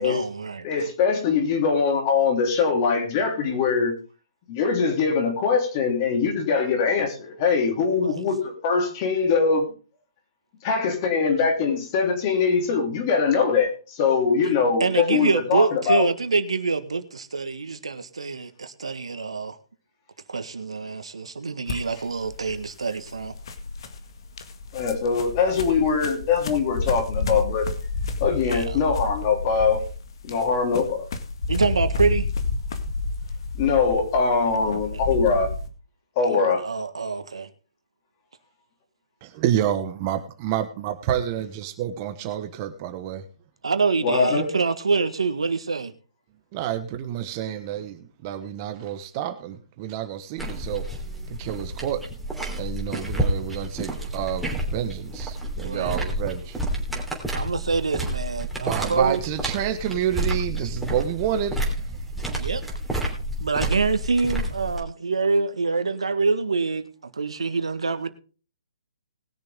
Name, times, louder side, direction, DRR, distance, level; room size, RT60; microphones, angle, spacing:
voice 1, 0.0-0.7 8.0-8.2 11.6-11.7 14.8-19.6 20.3-23.3 28.4-28.8 31.5-32.3 34.5-35.1 36.3-37.5 43.6-45.9 55.6-56.0 57.3-59.2 60.6-60.7 62.4-62.6 63.4-68.1, right 4 dB, 80° right, 10 dB, 1.6 m, -26 dB
voice 2, 0.6-3.9 4.5-9.7 10.6-16.1 24.7-27.7 28.2-29.8 30.2-31.1 33.6-35.5 36.1-36.6 44.0-44.5, left 5 dB, 35° left, 3 dB, 3.4 m, -22 dB
sound 1, 21.7-35.7, left 3 dB, 55° left, 1.8 m, -30 dB
voice 3, 39.2-43.2 46.5-50.9 51.3-52.0 52.6-56.6 58.6-61.8, right 10 dB, 30° right, 8 dB, 1.2 m, -29 dB
sound 2, 50.4-64.8, right 1 dB, ahead, 3.1 m, -30 dB
20.5 x 6.8 x 3.6 m, 0.36 s
hypercardioid pair, 140°, 3 cm